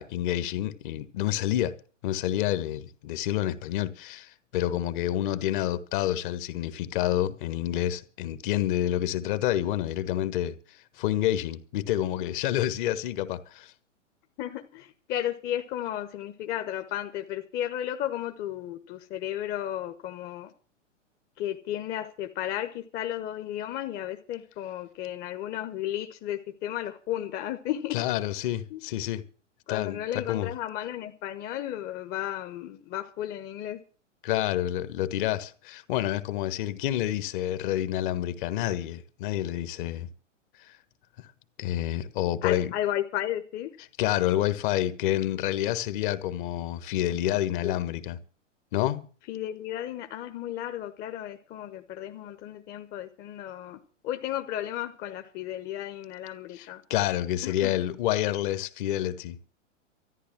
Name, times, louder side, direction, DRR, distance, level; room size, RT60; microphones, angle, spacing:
voice 1, 0.0-1.7 2.0-13.7 27.9-29.2 29.7-30.5 34.2-40.1 40.6-40.8 41.2-41.3 41.6-42.7 44.0-48.2 48.7-49.1 56.5-59.4, left 13 dB, 40° left, 1.4 m, -28 dB
voice 2, 14.4-20.5 21.4-28.0 28.7-28.8 29.7-33.8 42.4-43.7 47.6-47.7 49.3-56.8 57.4-57.7, left 12 dB, 25° left, 1.1 m, -34 dB
13.5 x 10.0 x 7.4 m
figure-of-eight pair, 110°, 38 cm